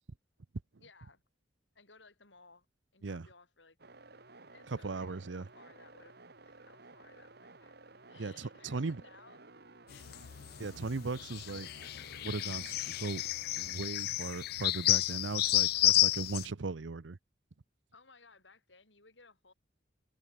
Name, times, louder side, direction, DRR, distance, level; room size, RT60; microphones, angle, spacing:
voice 1, 0.8-1.2 1.7-2.7 2.9-3.8 4.1-10.2 17.9-19.5, left 4 dB, 85° left, 7.5 m, -61 dB
sound 1, 3.8-13.7, right 3 dB, 60° right, 3.0 m, -56 dB
voice 2, 4.7-5.5 8.2-9.0 10.6-11.7 12.2-13.2 13.6-17.2, right 3 dB, 90° right, 0.7 m, -38 dB
sound 2, 9.9-16.4, left 16 dB, 60° left, 0.3 m, -31 dB
head